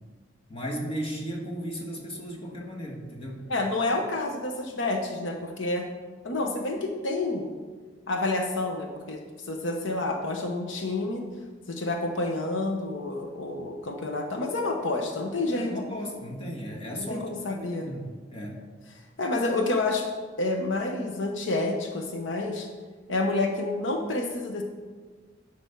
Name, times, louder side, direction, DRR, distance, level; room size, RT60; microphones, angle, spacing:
voice 1, 0.5-3.4 15.5-18.6, equal, 30° left, -1 dB, 1.7 m, -35 dB
voice 2, 3.5-5.9 6.2-7.5 8.1-9.2 9.5-11.2 11.7-15.7 17.0-17.9 19.2-20.1 20.4-22.7 23.1-24.6, left 2 dB, 80° left, 3 dB, 0.9 m, -29 dB
10.5 x 5.2 x 5.8 m, 1.4 s
head